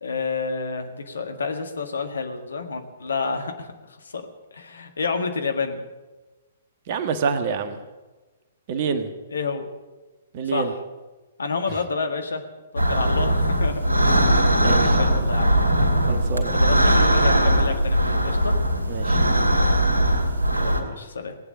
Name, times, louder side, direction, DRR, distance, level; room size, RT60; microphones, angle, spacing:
voice 1, 0.0-5.8 9.3-9.7 10.5-10.7 11.4-12.4 12.9-13.8 14.3-15.5 16.5-18.5 20.5-21.4, left 4 dB, 65° left, 6 dB, 1.8 m, -29 dB
voice 2, 6.9-7.8 8.7-9.1 10.3-10.7 14.6-15.0 16.1-16.6 18.9-19.2, right 5 dB, 40° right, 8 dB, 1.4 m, -27 dB
sound 1, 12.8-20.8, right 1 dB, 80° right, 2.6 m, -20 dB
18.0 x 9.0 x 8.9 m, 1.2 s
figure-of-eight pair, 115°, 0 cm